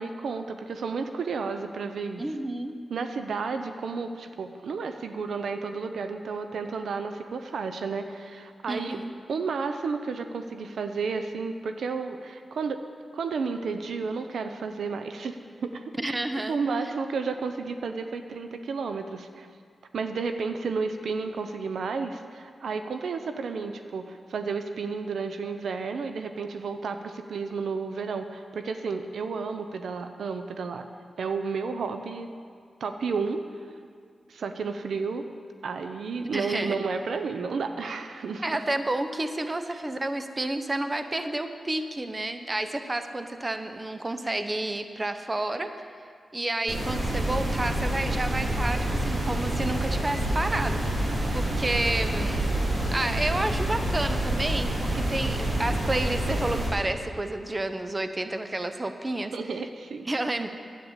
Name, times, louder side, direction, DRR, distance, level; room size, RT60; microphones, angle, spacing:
voice 1, 0.0-2.3 2.9-9.0 9.3-12.8 13.1-16.1 16.5-19.5 19.9-30.9 31.2-32.3 32.8-33.4 34.3-35.2 35.6-38.6 39.7-39.8 59.3-60.1, right 4 dB, 80° right, 7 dB, 0.6 m, -32 dB
voice 2, 2.2-2.7 8.7-9.1 16.0-16.6 36.2-36.8 38.4-45.7 46.3-52.5 52.9-59.3 60.1-60.5, right 2 dB, 25° right, 8 dB, 0.8 m, -30 dB
sound 1, 46.7-56.7, right 1 dB, 55° right, 4.1 m, -27 dB
10.0 x 8.7 x 8.1 m, 2.1 s
cardioid pair, 70°, 0 cm